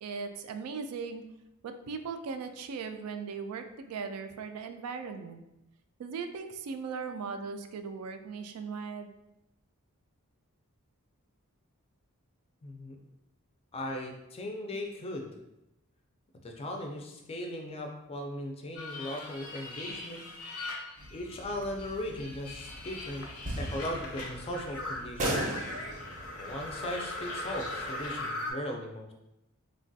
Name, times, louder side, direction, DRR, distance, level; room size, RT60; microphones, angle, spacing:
voice 1, 0.0-1.2 1.6-5.4 6.0-9.1, right 5 dB, 85° right, 7 dB, 0.3 m, -38 dB
voice 2, 12.6-13.0 13.7-15.3 16.4-20.3 21.1-23.2 23.6-25.5 26.4-29.1, left 1 dB, 25° left, 2 dB, 0.4 m, -38 dB
sound 1, 18.7-21.5 21.8-28.5, left 2 dB, 85° left, 0.5 m, -40 dB
sound 2, 21.0-28.2, right 1 dB, 35° right, 0.5 m, -39 dB
3.2 x 2.2 x 2.6 m, 0.89 s
head